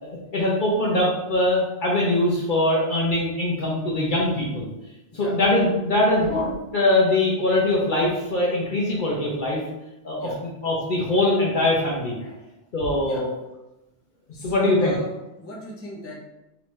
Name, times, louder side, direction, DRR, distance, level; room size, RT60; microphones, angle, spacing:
voice 1, 0.0-4.7 5.1-9.6 10.0-10.3 10.6-12.2 12.7-13.3 14.4-14.9, left 1 dB, 50° left, -3 dB, 0.7 m, -22 dB
voice 2, 14.3-15.1 15.4-16.2, equal, 15° left, -4 dB, 0.6 m, -37 dB
3.4 x 3.0 x 3.1 m, 0.96 s
omnidirectional pair, 1.2 m